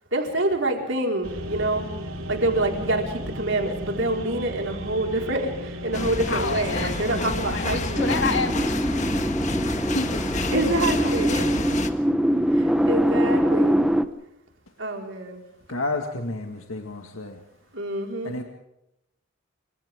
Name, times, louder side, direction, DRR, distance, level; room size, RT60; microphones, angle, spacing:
voice 1, 0.1-1.9 2.3-8.2 10.5-11.5 12.5-13.9 14.8-15.4 17.7-18.4, right 1 dB, 60° right, 2 dB, 4.9 m, -26 dB
sound 1, 1.2-8.3, equal, 80° right, 3.2 m, -35 dB
sound 2, 5.9-11.9, left 2 dB, 35° left, 1.6 m, -29 dB
voice 2, 6.3-7.2 7.5-9.1 9.9-10.5 11.1-11.2, left 4 dB, 60° left, 6 dB, 2.4 m, -30 dB
sound 3, 8.0-14.1, equal, 5° right, 0.9 m, -23 dB
voice 3, 15.7-17.3 18.3-18.4, left 2 dB, 80° left, 4 dB, 2.0 m, -30 dB
28.5 x 25.5 x 3.7 m, 0.82 s
head